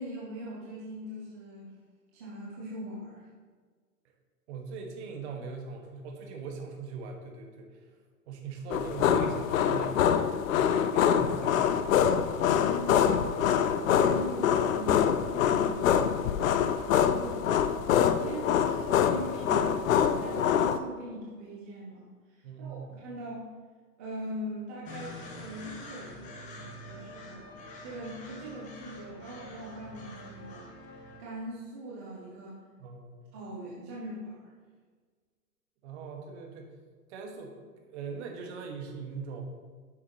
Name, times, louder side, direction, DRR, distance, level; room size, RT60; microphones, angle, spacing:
voice 1, 0.0-1.8 2.1-3.3 12.4-13.2 13.7-23.5 24.0-27.5 27.8-32.6 33.3-34.5, right 1 dB, 10° right, -6 dB, 0.4 m, -41 dB
voice 2, 4.5-7.9 8.3-10.1 10.6-11.8 22.4-22.9 32.8-33.3 35.8-36.8 37.1-39.4, right 5 dB, 45° right, 2 dB, 1.6 m, -41 dB
sound 1, 8.7-20.8, left 8 dB, 55° left, 0.6 m, -25 dB
sound 2, 24.9-31.2, left 1 dB, 15° left, 0.9 m, -46 dB
10.0 x 7.2 x 2.9 m, 1.5 s
hypercardioid pair, 135°, 48 cm